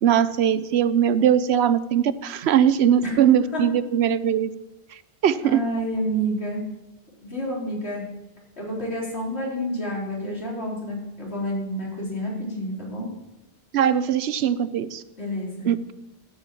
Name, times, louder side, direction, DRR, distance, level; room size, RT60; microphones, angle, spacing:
voice 1, 0.0-4.5 5.2-5.6 13.7-15.0 15.7-15.9, right 9 dB, 90° right, 15 dB, 0.9 m, -20 dB
voice 2, 5.4-6.6 7.2-8.0 8.6-13.1 15.2-15.7, equal, 90° left, -4 dB, 4.3 m, -29 dB
12.0 x 7.5 x 8.6 m, 0.99 s
omnidirectional pair, 1.1 m